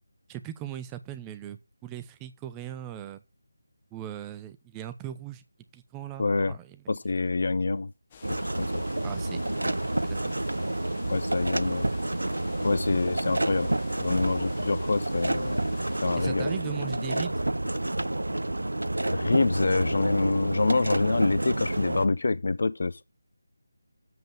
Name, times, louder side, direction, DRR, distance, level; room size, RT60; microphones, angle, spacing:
voice 1, 0.3-3.2 3.9-5.4 5.7-7.0 9.0-10.4 14.8-14.9 16.2-17.4, right 11 dB, 10° right, 0.6 m, -39 dB
voice 2, 6.2-6.5 6.9-7.9 8.3-8.8 11.1-11.9 12.6-13.7 14.0-15.6 16.0-16.5 19.1-23.0, left 3 dB, 55° left, 0.5 m, -26 dB
sound 1, 8.1-16.3, left 6 dB, 25° left, 1.0 m, -50 dB
sound 2, 8.2-22.1, right 1 dB, 75° right, 0.5 m, -29 dB
7.7 x 5.2 x 7.0 m
figure-of-eight pair, 160°, 0 cm